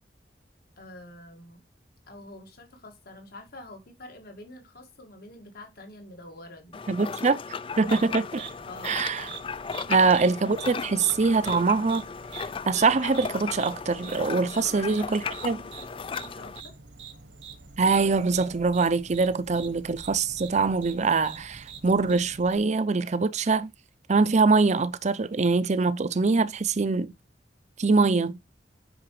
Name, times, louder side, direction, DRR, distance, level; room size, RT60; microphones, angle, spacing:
voice 1, 0.8-1.6 2.1-7.0 8.7-9.1 9.8-10.0 14.6-15.3 15.8-16.7 19.6-19.7, left 2 dB, 60° left, 2.1 m, -47 dB
sound 1, 6.7-16.6, left 5 dB, 30° left, 0.3 m, -36 dB
voice 2, 6.9-7.4 7.8-8.5 8.8-9.3 9.9-12.0 12.7-15.6 17.8-23.7 24.1-27.1 27.8-28.4, right 4 dB, 40° right, 0.6 m, -23 dB
sound 2, 7.7-22.6, right 6 dB, 75° right, 1.2 m, -45 dB
8.8 x 5.8 x 3.2 m
head